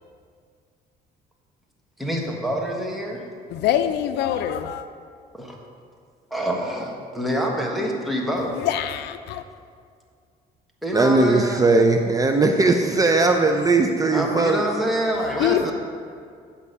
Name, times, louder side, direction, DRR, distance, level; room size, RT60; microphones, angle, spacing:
voice 1, 2.0-3.2 5.4-5.6 6.3-8.5 10.8-11.6 14.1-15.7, equal, ahead, 1.4 m, -26 dB
voice 2, 3.5-4.9 8.5-9.4 15.1-15.7, left 11 dB, 75° left, 0.5 m, -24 dB
voice 3, 10.9-14.6 15.6-15.7, right 3 dB, 20° right, 0.5 m, -19 dB
8.4 x 5.8 x 5.4 m
cardioid pair, 110°, 17 cm